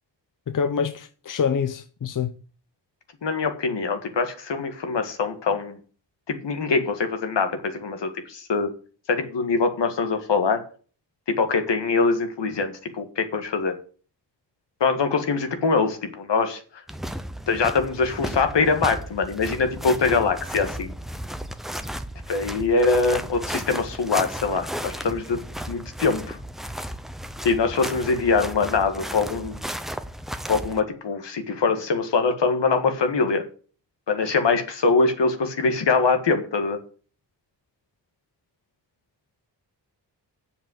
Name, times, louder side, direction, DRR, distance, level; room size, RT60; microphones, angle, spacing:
voice 1, 0.5-2.3, left 6 dB, 50° left, 0.8 m, -26 dB
voice 2, 3.2-5.8 6.3-8.7 9.1-10.6 11.4-13.8 14.8-16.6 17.5-20.9 22.3-25.4 25.7-26.4 27.4-29.6 30.5-33.4 34.1-36.8, left 4 dB, 80° left, 1.8 m, -23 dB
sound 1, 16.9-30.8, equal, ahead, 0.6 m, -34 dB
8.0 x 6.8 x 7.8 m
wide cardioid pair, 165°, 42 cm